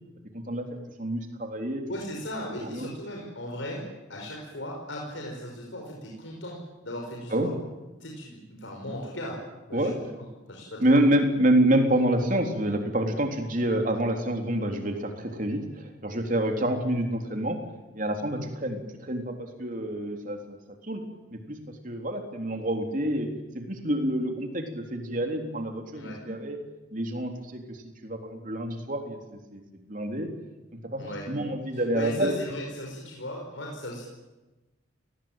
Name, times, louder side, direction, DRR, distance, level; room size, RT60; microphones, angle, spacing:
voice 1, 1.0-1.8 2.6-2.9 7.3-7.5 9.7-10.0 10.8-17.6 17.9-20.6 20.8-21.0 21.3-23.3 23.5-26.6 26.9-27.8 28.0-29.2 29.5-30.3 30.9-32.3, right 1 dB, 40° right, 4 dB, 3.7 m, -27 dB
voice 2, 1.9-3.8 4.1-6.6 6.8-7.5 8.0-9.4 9.7-11.1 25.9-26.2 31.0-31.3 31.7-34.0, left 1 dB, 75° left, -1 dB, 5.6 m, -37 dB
29.5 x 20.0 x 9.1 m, 1.1 s
head